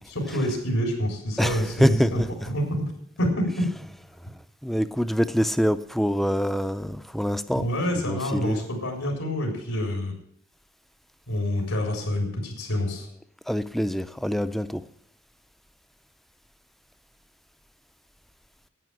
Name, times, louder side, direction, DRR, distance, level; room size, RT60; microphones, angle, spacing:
voice 1, 0.1-2.2 2.5-2.6 3.2-3.6 7.5-10.1 11.3-13.1, equal, 85° left, 2 dB, 4.1 m, -27 dB
voice 2, 1.4-2.5 4.6-7.7 8.0-8.6 13.5-14.8, equal, ahead, 13 dB, 0.4 m, -25 dB
11.0 x 8.9 x 9.1 m, 0.69 s
head